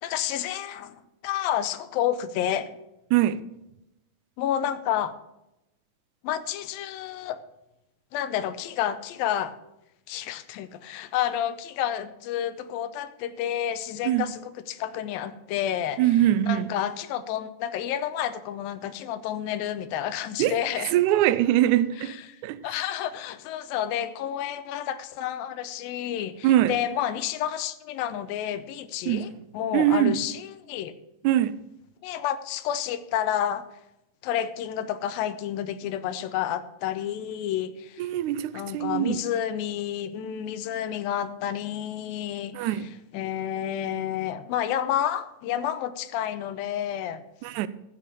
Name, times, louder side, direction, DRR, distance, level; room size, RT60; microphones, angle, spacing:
voice 1, 0.0-2.8 4.4-5.1 6.2-7.4 8.1-9.6 10.1-16.0 16.4-20.9 22.0-22.4 22.6-30.9 32.0-33.7 34.2-38.1 38.5-42.7 43.1-47.2, left 10 dB, 85° left, 2.5 m, -30 dB
voice 2, 3.1-3.4 14.0-14.3 16.0-16.7 20.4-20.6 20.9-22.2 22.4-22.6 26.4-26.8 29.1-30.2 31.2-31.6 38.0-39.2 42.5-42.9 47.4-47.7, right 12 dB, 85° right, 1.7 m, -23 dB
15.0 x 6.7 x 6.8 m
omnidirectional pair, 4.1 m